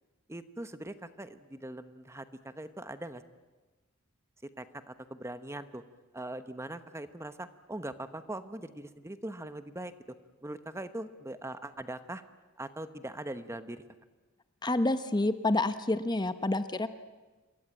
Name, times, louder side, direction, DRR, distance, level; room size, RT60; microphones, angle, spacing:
voice 1, 0.3-3.2 4.6-5.8 6.1-9.9 10.4-12.2 12.6-13.8, right 1 dB, 15° right, 11 dB, 1.0 m, -41 dB
voice 2, 14.6-16.9, left 2 dB, 20° left, 11 dB, 0.9 m, -28 dB
27.5 x 23.0 x 8.9 m, 1.2 s
head